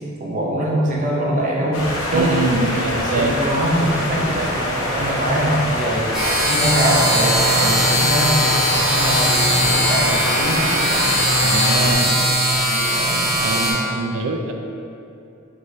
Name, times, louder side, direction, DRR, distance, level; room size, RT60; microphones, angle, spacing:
voice 1, 0.0-1.8 2.1-2.3 2.7-6.1 6.5-11.2 12.0-13.7, right 1 dB, 40° right, -4 dB, 0.6 m, -23 dB
sound 1, 1.7-11.9, left 1 dB, 75° left, 0.9 m, -25 dB
voice 2, 2.1-3.4 11.4-12.1 13.4-14.5, right 3 dB, 75° right, 3 dB, 0.4 m, -24 dB
sound 2, 6.1-13.7, equal, ahead, 0.8 m, -19 dB
4.2 x 3.1 x 3.2 m, 2.7 s
head